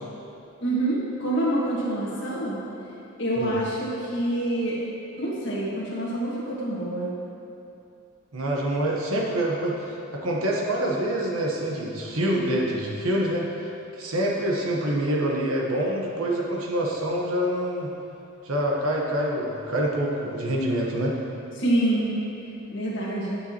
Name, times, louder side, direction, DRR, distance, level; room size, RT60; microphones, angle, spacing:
voice 1, 0.6-2.6 3.2-4.8 5.2-7.1 21.6-22.1 22.7-23.4, right 1 dB, 55° left, -6 dB, 1.7 m, -26 dB
voice 2, 8.3-13.7 14.0-17.9 18.4-21.1, right 1 dB, 85° right, -2 dB, 1.1 m, -26 dB
9.1 x 6.7 x 2.9 m, 2.7 s
head